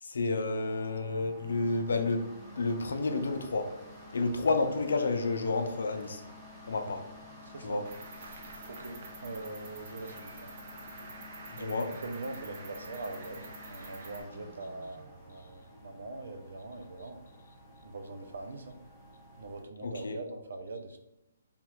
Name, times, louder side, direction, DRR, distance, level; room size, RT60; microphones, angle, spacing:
voice 1, 0.0-2.3 2.6-3.7 4.1-6.2 6.6-7.0 7.6-7.8 11.5-11.9 19.8-20.2, left 3 dB, 85° left, 6 dB, 0.5 m, -30 dB
sound 1, 0.7-19.6, left 1 dB, 10° right, 0.7 m, -51 dB
voice 2, 7.4-7.8 8.7-10.5 11.6-17.2 17.8-18.8 19.4-21.0, right 2 dB, 80° right, 7 dB, 0.6 m, -42 dB
Cricket, 7.8-14.2, right 3 dB, 45° right, 0.7 m, -48 dB
3.6 x 2.3 x 4.4 m, 0.88 s
hypercardioid pair, 165°, 0 cm